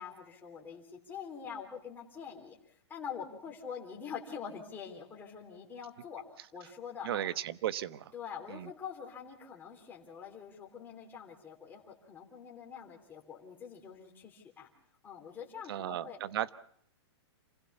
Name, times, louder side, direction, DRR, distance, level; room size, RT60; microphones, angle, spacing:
voice 1, 0.0-7.3 8.1-14.7 15.0-16.2, left 7 dB, 15° left, -1 dB, 3.6 m, -45 dB
voice 2, 7.0-8.1 8.5-8.7 15.7-16.5, right 12 dB, 60° right, 15 dB, 1.1 m, -35 dB
27.0 x 16.0 x 7.0 m, 0.66 s
hypercardioid pair, 150°, 14 cm